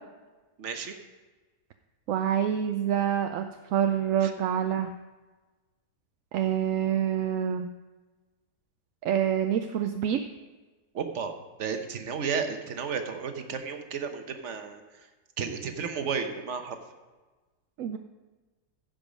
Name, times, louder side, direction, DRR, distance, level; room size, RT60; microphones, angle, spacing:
voice 1, 0.6-1.0 4.2-4.3 10.9-11.3 11.6-15.1 15.4-16.8, right 6 dB, 55° right, 6 dB, 1.2 m, -33 dB
voice 2, 2.1-3.5 3.7-4.9 6.3-7.7 9.0-10.2 17.8-18.0, right 9 dB, 70° right, 6 dB, 0.8 m, -26 dB
15.0 x 5.3 x 5.2 m, 1.3 s
omnidirectional pair, 1.7 m